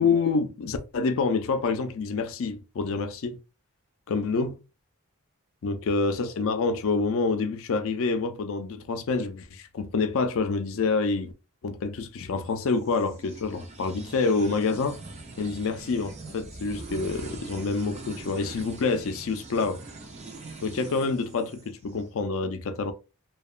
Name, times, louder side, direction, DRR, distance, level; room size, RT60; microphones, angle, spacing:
voice 1, 0.0-3.4 4.1-4.6 5.6-11.3 11.6-15.0 15.4-19.8 20.6-22.9, left 4 dB, 60° left, 0.4 m, -27 dB
sound 1, 12.4-22.1, right 2 dB, 30° right, 0.5 m, -43 dB
2.8 x 2.2 x 2.3 m
head